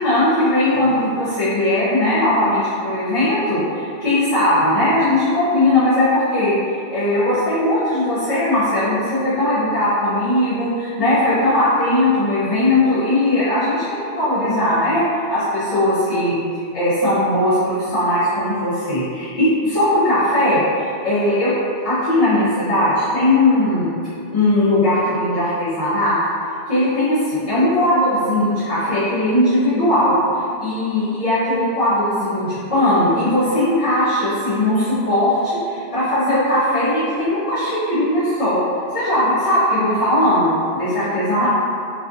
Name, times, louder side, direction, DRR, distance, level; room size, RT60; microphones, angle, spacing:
voice 1, 0.0-6.6 6.9-16.4 16.7-21.5 21.8-23.9 24.3-26.2 26.7-30.2 30.6-38.6 38.9-41.5, left 1 dB, 40° left, -14 dB, 0.7 m, -18 dB
2.5 x 2.4 x 2.5 m, 2.4 s
omnidirectional pair, 1.1 m